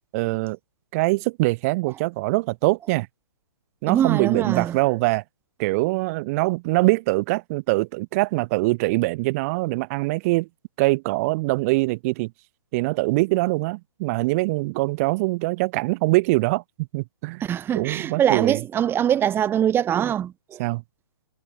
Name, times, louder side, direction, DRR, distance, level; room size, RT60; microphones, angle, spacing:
voice 1, 0.1-0.6 0.9-3.1 3.8-5.2 5.6-10.5 10.8-12.3 12.7-16.6 16.9-17.4 17.7-18.6 20.6-20.8, right 23 dB, 35° right, 5.4 m, -23 dB
voice 2, 3.9-4.8 17.4-20.6, right 10 dB, 15° right, 5.3 m, -23 dB
hypercardioid pair, 135°, 14 cm